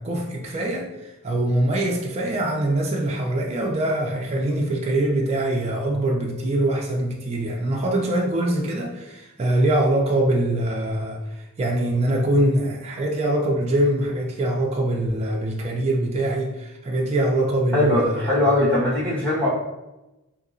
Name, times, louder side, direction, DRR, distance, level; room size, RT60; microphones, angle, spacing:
voice 1, 0.0-11.2 11.6-18.3, right 1 dB, 30° right, -1 dB, 0.3 m, -23 dB
voice 2, 17.7-19.5, left 1 dB, 5° left, -10 dB, 1.2 m, -20 dB
3.1 x 2.7 x 2.5 m, 0.99 s
head